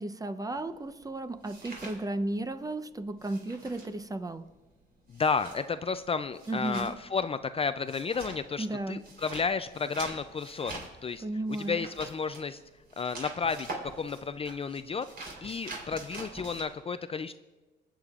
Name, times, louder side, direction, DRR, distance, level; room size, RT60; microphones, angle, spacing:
voice 1, 0.0-4.4 6.5-6.9 8.6-9.0 11.2-11.8, right 2 dB, 20° right, 10 dB, 0.6 m, -34 dB
sound 1, 0.6-2.7 3.0-16.6, right 3 dB, 50° right, 3.7 m, -45 dB
voice 2, 5.1-11.2 11.6-12.6 13.0-15.1 15.4-17.3, left 5 dB, 30° left, 11 dB, 0.4 m, -32 dB
26.5 x 8.9 x 2.4 m, 1.2 s
cardioid pair, 90°, 20 cm